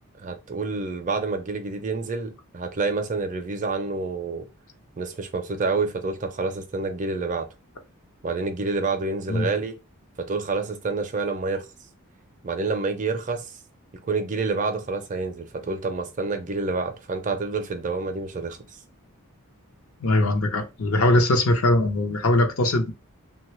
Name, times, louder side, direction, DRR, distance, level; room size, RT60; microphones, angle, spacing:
voice 1, 0.2-4.5 5.0-7.5 8.2-9.8 10.2-11.6 12.4-13.5 14.0-18.6, right 3 dB, 35° right, 0.4 m, -28 dB
voice 2, 20.0-22.9, left 1 dB, 65° left, 0.6 m, -21 dB
3.1 x 2.3 x 3.0 m
head